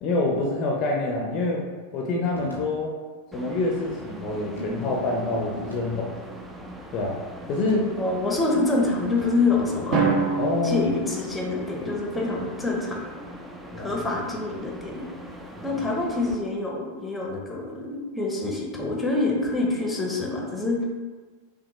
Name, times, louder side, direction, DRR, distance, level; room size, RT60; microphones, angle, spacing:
voice 1, 0.0-1.6 1.9-2.9 3.3-6.2 6.9-7.2 7.5-7.9 10.4-10.9 13.7-14.0 15.6-15.8, left 2 dB, 35° left, -1 dB, 0.6 m, -26 dB
sound 1, 2.3-2.7 4.6-5.9 7.7-9.4, equal, 80° right, 0.9 m, -38 dB
sound 2, 3.3-16.4, equal, 10° right, 0.4 m, -41 dB
voice 2, 7.9-10.1 10.6-13.0 13.8-15.0 15.6-20.9, left 2 dB, 5° left, -1 dB, 0.8 m, -26 dB
Drum, 9.9-11.9, right 4 dB, 35° right, 1.1 m, -26 dB
5.9 x 2.2 x 3.0 m, 1.4 s
figure-of-eight pair, 90°, 0 cm